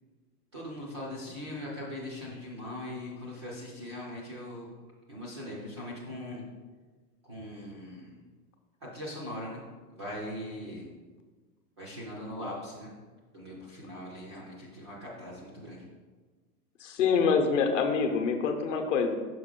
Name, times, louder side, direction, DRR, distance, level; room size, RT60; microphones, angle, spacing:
voice 1, 0.5-4.7 5.1-6.5 7.2-8.2 8.8-9.6 9.9-10.9 11.8-12.9 13.3-15.8, left 1 dB, 20° right, -5 dB, 0.4 m, -40 dB
voice 2, 16.8-19.1, left 5 dB, 50° left, 5 dB, 0.8 m, -26 dB
6.0 x 4.8 x 3.7 m, 1.4 s
hypercardioid pair, 155°, 46 cm